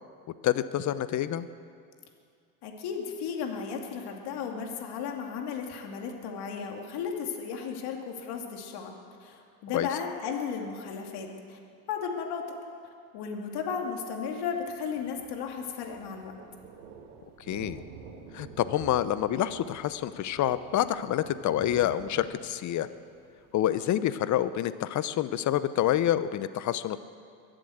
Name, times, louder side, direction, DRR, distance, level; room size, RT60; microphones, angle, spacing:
voice 1, 0.4-1.5 9.7-9.9 17.4-17.8 18.3-22.9 23.5-27.0, left 12 dB, 40° left, 14 dB, 0.8 m, -27 dB
voice 2, 2.6-8.9 9.2-11.6 11.9-12.4 13.1-16.3, left 6 dB, 60° left, 2 dB, 2.6 m, -35 dB
Thunder, 14.5-24.4, right 5 dB, 85° right, 1.9 m, -49 dB
23.0 x 7.8 x 8.0 m, 2.4 s
supercardioid pair, 95°, 45 cm